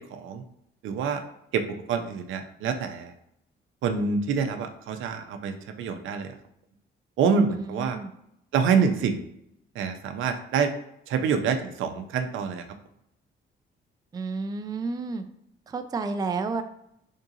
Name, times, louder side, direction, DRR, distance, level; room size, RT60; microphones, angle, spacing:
voice 1, 0.1-0.4 0.8-1.2 1.5-3.1 3.8-6.3 7.2-8.0 8.5-9.2 9.7-10.7 11.1-12.6, right 6 dB, 80° right, 7 dB, 0.5 m, -26 dB
voice 2, 7.5-8.1 14.1-15.2 15.7-16.6, right 4 dB, 20° right, 7 dB, 0.3 m, -31 dB
3.6 x 2.7 x 3.8 m, 0.77 s
cardioid pair, 90°, 20 cm